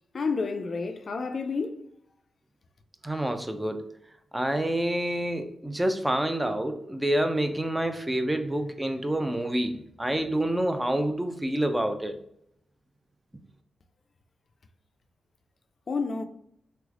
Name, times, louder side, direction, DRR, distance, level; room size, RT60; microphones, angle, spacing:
voice 1, 0.1-1.9 15.9-16.2, left 4 dB, 55° left, 0.4 m, -30 dB
voice 2, 3.0-3.9 4.3-12.2, right 1 dB, 15° right, 0.4 m, -28 dB
3.2 x 3.1 x 2.4 m
cardioid pair, 65°, 0 cm